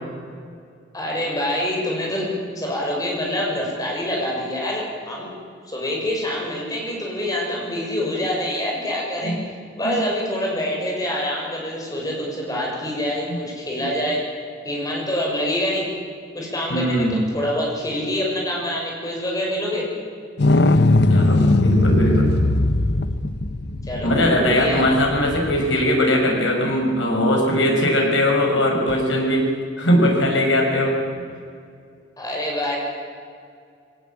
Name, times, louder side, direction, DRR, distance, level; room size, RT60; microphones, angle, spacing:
voice 1, 0.9-2.3 2.5-5.3 5.6-9.4 9.8-14.2 14.6-15.9 16.3-19.9 23.9-24.1 24.4-24.8 32.2-32.8, left 1 dB, 20° left, -2 dB, 6.5 m, -26 dB
voice 2, 16.7-17.2 21.1-22.3 24.0-29.5 29.8-31.2, equal, 80° left, 0 dB, 6.4 m, -20 dB
sound 1, 20.4-25.8 28.9-29.0, left 2 dB, 60° left, 0.9 m, -19 dB
21.5 x 18.5 x 8.8 m, 2.3 s
head